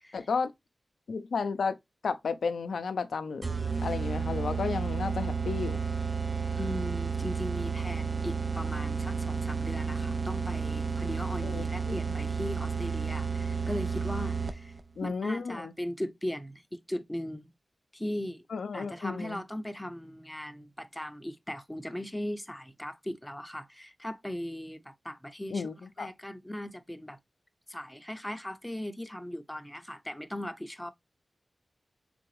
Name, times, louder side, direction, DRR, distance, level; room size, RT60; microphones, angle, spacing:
voice 1, 0.1-0.5 1.1-1.8 2.0-3.4 3.8-5.8 11.4-12.2 15.0-15.7 18.5-19.4 25.5-26.1, left 5 dB, 85° left, 0.4 m, -33 dB
sound 1, 3.4-14.8, right 5 dB, 45° right, 0.4 m, -32 dB
voice 2, 6.6-14.7 15.0-17.5 17.9-18.4 18.7-25.7 26.0-27.2 27.7-30.9, left 1 dB, 10° left, 0.6 m, -38 dB
3.8 x 3.4 x 3.1 m
cardioid pair, 40°, 0 cm